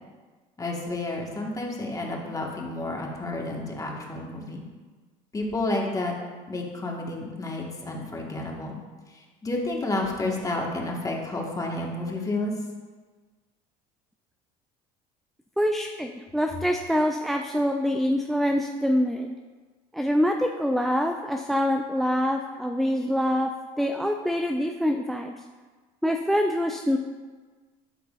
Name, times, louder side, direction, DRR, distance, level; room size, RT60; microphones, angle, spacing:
voice 1, 0.6-4.6 5.3-6.1 6.5-8.8 9.4-12.5, left 2 dB, 20° left, -1 dB, 1.5 m, -30 dB
voice 2, 15.6-19.3 19.9-23.5 23.8-25.3 26.0-27.0, equal, ahead, 4 dB, 0.4 m, -25 dB
12.0 x 4.7 x 2.5 m, 1.4 s
supercardioid pair, 85°, 18 cm